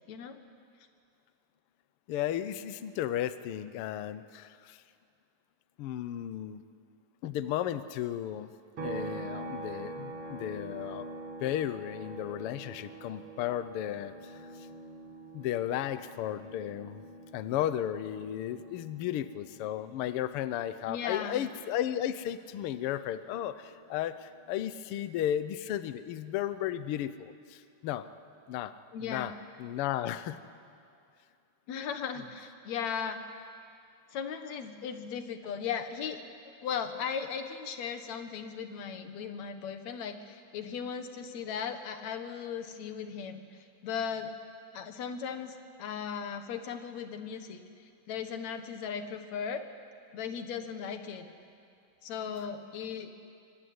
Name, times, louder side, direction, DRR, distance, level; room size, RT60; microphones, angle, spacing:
voice 1, 0.1-0.4 20.9-21.4 28.9-29.3 31.7-33.2 34.1-44.3 44.7-47.6 48.1-49.6 50.1-51.3 52.0-53.1, left 7 dB, 65° left, 8 dB, 2.6 m, -37 dB
voice 2, 2.1-4.8 5.8-6.6 7.2-8.5 8.8-11.1 11.4-14.5 15.3-17.0 17.3-28.1 28.5-28.7 29.0-30.4 32.1-32.3 52.4-52.5, left 11 dB, 90° left, 13 dB, 1.2 m, -34 dB
sound 1, 8.8-22.3 22.7-24.9, right 2 dB, 45° right, 3.0 m, -45 dB
24.0 x 23.5 x 9.6 m, 2.4 s
omnidirectional pair, 3.6 m